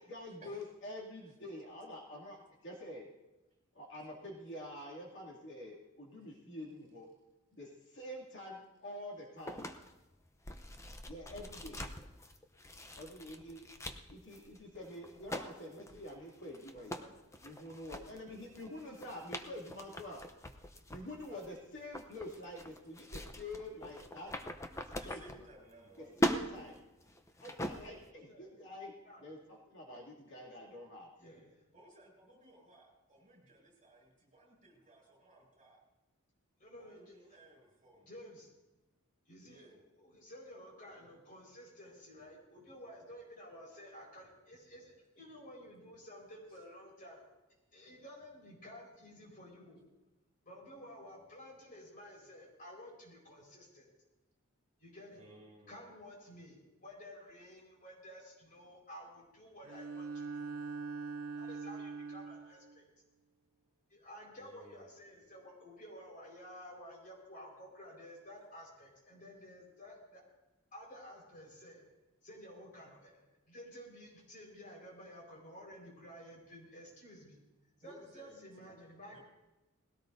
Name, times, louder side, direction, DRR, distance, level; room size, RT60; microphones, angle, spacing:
voice 1, 0.0-2.4 2.6-3.1 3.7-7.1 7.5-9.6 11.1-11.8 13.0-13.6 14.1-16.9 17.4-20.2 20.9-24.3 25.0-25.2 26.0-26.7 27.4-28.9 29.2-31.5, left 1 dB, 55° left, -3 dB, 2.6 m, -47 dB
sound 1, 9.4-25.9 26.1-28.1, equal, 15° left, 0.7 m, -42 dB
voice 2, 16.8-17.1 28.1-28.5 29.1-29.2 30.6-30.7 31.2-31.6 36.6-37.4 38.0-38.5 39.3-47.2 47.7-49.8 50.4-53.9 54.8-55.2 55.7-60.5 61.3-62.8 63.9-70.2 70.7-71.8 72.2-77.4 77.8-79.2, equal, 40° left, -2 dB, 4.8 m, -53 dB
voice 3, 24.9-26.2 31.7-35.8 36.8-38.1 39.4-39.7 55.1-55.8 64.3-64.9 77.8-78.7 79.1-79.2, right 1 dB, 35° right, 0 dB, 6.7 m, -59 dB
Bowed string instrument, 59.6-62.8, right 4 dB, 70° right, 0.7 m, -43 dB
20.5 x 17.0 x 2.7 m, 1.0 s
head